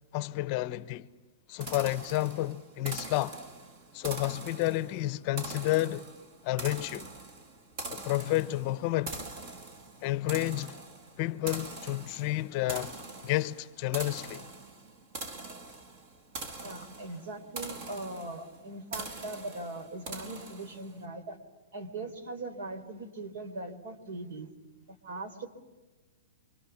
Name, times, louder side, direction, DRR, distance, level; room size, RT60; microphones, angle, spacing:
voice 1, 0.1-1.1 1.5-3.4 3.9-6.1 6.4-7.1 7.9-9.2 10.0-10.8 11.2-13.0 13.2-14.5, left 16 dB, 30° left, 0.9 m, -30 dB
sound 1, 1.6-21.0, right 3 dB, 35° right, 2.0 m, -43 dB
voice 2, 16.6-21.4 21.7-24.5 24.9-25.5, right 2 dB, 60° right, 4.0 m, -40 dB
28.5 x 25.5 x 7.2 m
hypercardioid pair, 170°, 0 cm